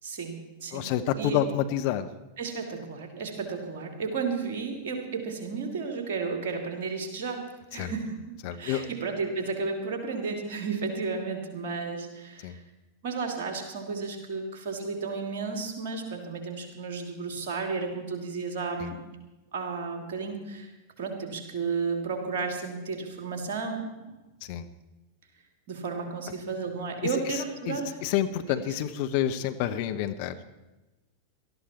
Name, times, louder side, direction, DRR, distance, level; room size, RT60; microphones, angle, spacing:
voice 1, 0.0-0.9 1.2-1.4 2.4-12.6 13.0-19.0 19.5-20.7 21.0-24.2 25.7-28.0, right 4 dB, 50° right, 4 dB, 2.9 m, -33 dB
voice 2, 0.7-2.1 7.8-7.9 8.4-8.9 12.4-12.6 18.8-18.9 24.4-24.7 27.3-30.3, left 10 dB, 45° left, 9 dB, 0.9 m, -29 dB
19.0 x 13.0 x 4.4 m, 1.1 s
figure-of-eight pair, 90°, 0 cm